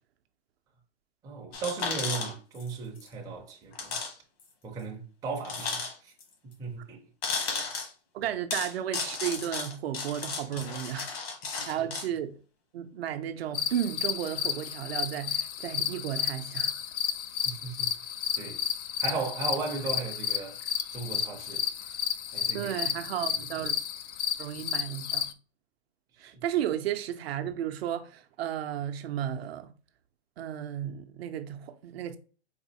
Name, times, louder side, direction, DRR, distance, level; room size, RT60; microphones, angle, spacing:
voice 1, 1.2-4.0 4.6-6.1 6.6-7.0 11.6-11.9 17.3-18.6 19.0-20.6 20.9-21.9 22.3-22.9 23.4-23.7 26.2-26.4, right 4 dB, 10° right, 0.5 m, -37 dB
sound 1, 1.5-2.7 3.0-3.1 3.7-4.1 4.4-4.5 5.4-6.2 7.2-7.9 8.5-12.1, left 4 dB, 60° left, 1.3 m, -34 dB
voice 2, 8.1-11.1 11.6-12.4 12.7-16.8 22.5-23.7 24.4-25.3 26.2-29.7 30.4-32.2, right 10 dB, 60° right, 0.5 m, -33 dB
sound 2, 13.5-25.3, left 8 dB, 80° left, 0.5 m, -32 dB
4.1 x 2.4 x 2.7 m
hypercardioid pair, 135°, 35 cm